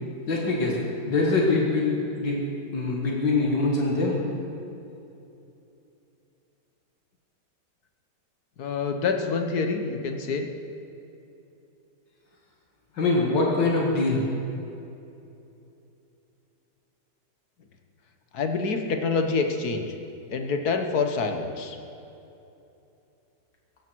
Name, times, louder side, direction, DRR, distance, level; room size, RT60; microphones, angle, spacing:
voice 1, 0.3-0.8 1.1-2.4 2.7-4.2 13.0-14.2, left 3 dB, 80° left, -2 dB, 2.4 m, -23 dB
voice 2, 8.6-10.5 18.3-19.9 20.3-21.8, left 4 dB, 60° left, 5 dB, 1.5 m, -27 dB
17.0 x 15.0 x 4.6 m, 2.8 s
omnidirectional pair, 1.9 m